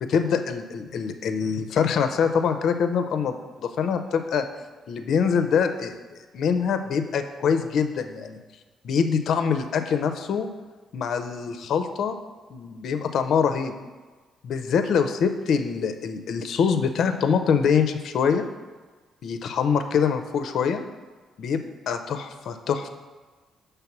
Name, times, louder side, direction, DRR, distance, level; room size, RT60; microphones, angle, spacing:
voice 1, 0.0-4.5 4.9-6.0 6.3-8.4 8.8-10.5 10.9-12.2 12.5-13.7 14.4-18.5 19.2-20.8 21.4-22.9, left 6 dB, 70° left, 8 dB, 0.5 m, -24 dB
5.9 x 3.3 x 5.8 m, 1.3 s
cardioid pair, 90°, 0 cm